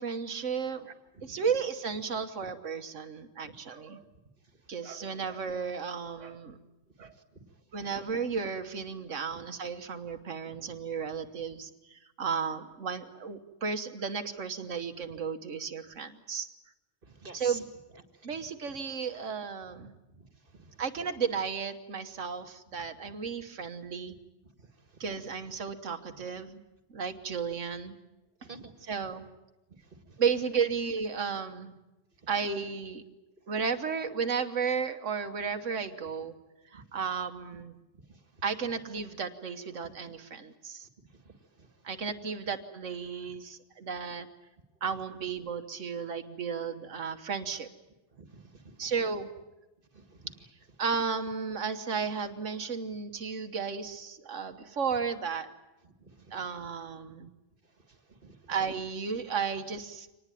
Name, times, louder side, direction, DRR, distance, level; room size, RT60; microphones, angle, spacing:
voice 1, 0.0-0.9 1.2-4.0 4.7-6.6 7.0-7.1 7.7-16.5 17.3-17.6 18.2-19.9 20.8-24.2 25.0-26.6 26.9-27.9 28.9-29.3 30.2-31.8 32.3-33.0 33.5-36.3 36.7-37.7 38.4-40.9 41.8-44.3 44.8-47.7 48.8-49.3 50.8-55.5 56.3-57.3 58.5-60.2, right 6 dB, 85° right, 7 dB, 1.7 m, -34 dB
voice 2, 0.9-1.4 2.4-2.5 3.4-3.5 7.0-7.4 9.3-9.4 17.0-17.6 18.2-18.3 20.2-20.3 20.5-20.8 24.6-24.7 28.4-28.7 36.7-36.8 38.1-38.4 39.8-39.9 41.2-41.7 48.2-49.1 49.9-50.3 56.0-56.3 57.9-58.5, right 3 dB, 45° right, 8 dB, 2.2 m, -50 dB
25.0 x 19.5 x 9.1 m, 1.0 s
omnidirectional pair, 1.2 m